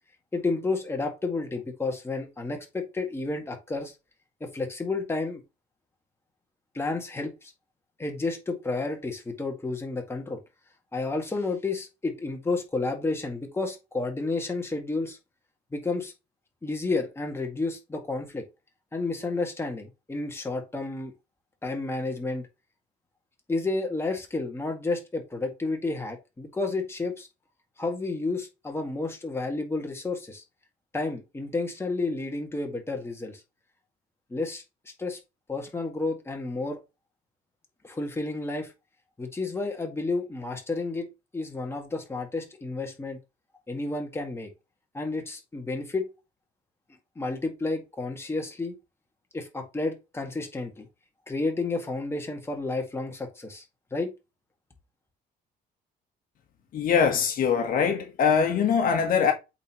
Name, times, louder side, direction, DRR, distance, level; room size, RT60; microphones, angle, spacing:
voice 1, 0.3-3.9 4.4-5.4 6.7-7.5 8.0-10.4 10.9-15.2 15.7-16.1 16.6-18.4 18.9-21.1 21.6-22.5 23.5-27.3 27.8-30.4 30.9-33.4 34.3-34.6 35.0-35.2 35.5-36.8 37.8-38.7 39.2-41.1 41.3-43.2 43.7-44.5 44.9-46.1 47.2-48.7 49.3-50.9 51.3-53.6 53.9-54.1, left 3 dB, 15° left, 1.8 m, -31 dB
voice 2, 56.7-59.3, left 6 dB, 55° left, 1.3 m, -22 dB
8.2 x 3.9 x 3.0 m
cardioid pair, 110°, 17 cm